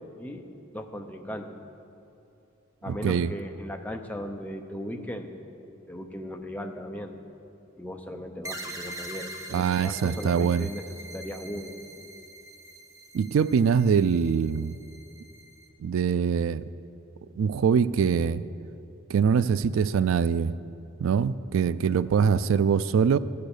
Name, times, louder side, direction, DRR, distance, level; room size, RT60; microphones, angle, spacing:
voice 1, 0.2-0.5 0.7-1.5 2.8-5.3 5.9-7.2 7.8-10.8 11.1-11.7, equal, 10° left, 4 dB, 0.8 m, -37 dB
voice 2, 2.9-3.3 9.5-10.7 13.1-14.8 15.8-16.7 17.4-18.4 19.1-20.5 21.0-23.2, right 6 dB, 80° right, 16 dB, 0.3 m, -23 dB
sound 1, 8.4-15.7, right 1 dB, 15° right, 0.9 m, -43 dB
13.5 x 8.6 x 6.6 m, 2.8 s
head